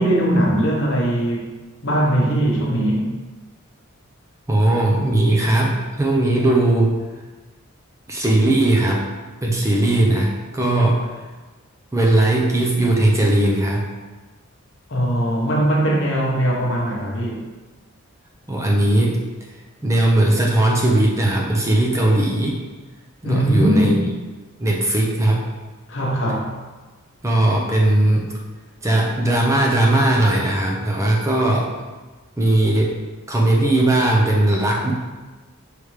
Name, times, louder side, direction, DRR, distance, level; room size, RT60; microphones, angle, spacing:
voice 1, 0.0-1.4 1.8-3.1 14.9-17.4 23.2-24.0 25.9-26.6, right 1 dB, 60° left, -3 dB, 1.0 m, -20 dB
voice 2, 4.5-6.9 8.1-9.1 9.4-11.0 11.9-13.9 18.5-19.2 19.8-22.6 23.2-24.0 24.6-25.4 27.2-28.3 28.8-31.7 32.4-32.9 33.3-34.9, right 1 dB, 15° right, -1 dB, 0.4 m, -18 dB
4.9 x 3.2 x 3.2 m, 1.3 s
head